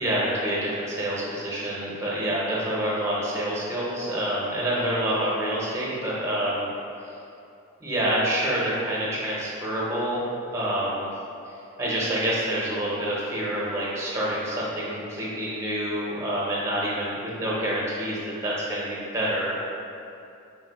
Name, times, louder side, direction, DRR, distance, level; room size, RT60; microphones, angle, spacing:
voice 1, 0.0-6.7 7.8-10.2 10.5-11.1 11.8-19.5, right 1 dB, 15° right, -6 dB, 0.7 m, -27 dB
3.6 x 2.7 x 4.0 m, 2.6 s
head